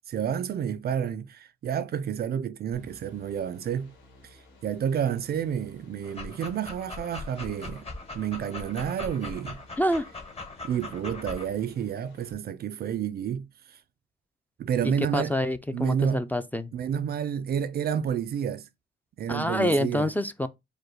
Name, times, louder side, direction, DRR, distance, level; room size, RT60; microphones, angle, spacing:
voice 1, 0.1-3.9 4.6-7.9 8.1-9.6 10.6-13.5 14.6-15.3 15.7-16.3 16.7-18.7 19.2-20.1, right 8 dB, 50° right, 0.5 m, -30 dB
sound 1, 2.7-12.3, left 1 dB, 75° left, 1.8 m, -55 dB
Dog, 6.0-11.5, left 3 dB, 30° left, 1.1 m, -40 dB
voice 2, 14.8-16.7 19.3-20.5, left 1 dB, 10° left, 0.4 m, -27 dB
5.0 x 2.2 x 4.6 m
cardioid pair, 90°, 20 cm